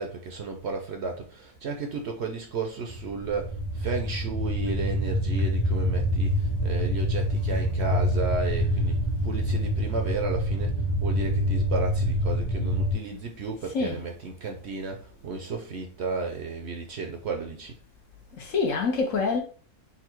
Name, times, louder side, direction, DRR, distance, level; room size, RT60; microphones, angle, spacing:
voice 1, 0.0-17.8, right 4 dB, 60° right, 0.8 m, -33 dB
sound 1, 2.9-12.9, equal, 20° left, 0.6 m, -26 dB
voice 2, 18.3-19.4, left 4 dB, 65° left, 1.3 m, -26 dB
4.0 x 2.4 x 4.4 m
omnidirectional pair, 1.5 m